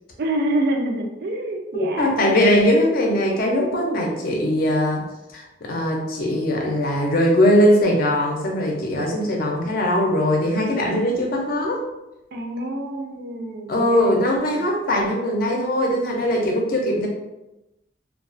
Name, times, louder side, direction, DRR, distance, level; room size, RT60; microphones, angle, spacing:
voice 1, 0.2-2.1 12.3-14.0, right 1 dB, 60° right, 3 dB, 0.4 m, -26 dB
voice 2, 1.7-5.1 5.3-11.9 13.7-17.1, left 1 dB, 55° left, 0 dB, 0.5 m, -20 dB
2.3 x 2.2 x 2.4 m, 0.95 s
head